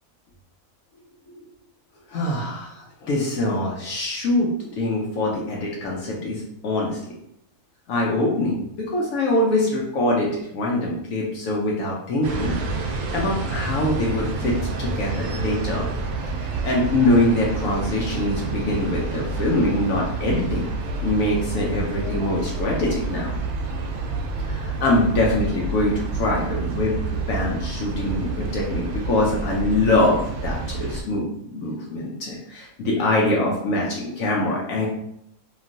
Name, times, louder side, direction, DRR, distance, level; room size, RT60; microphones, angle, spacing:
voice 1, 2.1-7.0 7.9-12.6 12.8-15.9 16.6-20.7 21.0-23.3 24.5-26.9 27.3-34.9, left 1 dB, 80° left, -3 dB, 1.0 m, -24 dB
sound 1, 12.2-31.0, right 3 dB, 85° right, 1.0 m, -28 dB
3.0 x 2.5 x 2.5 m, 0.73 s
omnidirectional pair, 1.4 m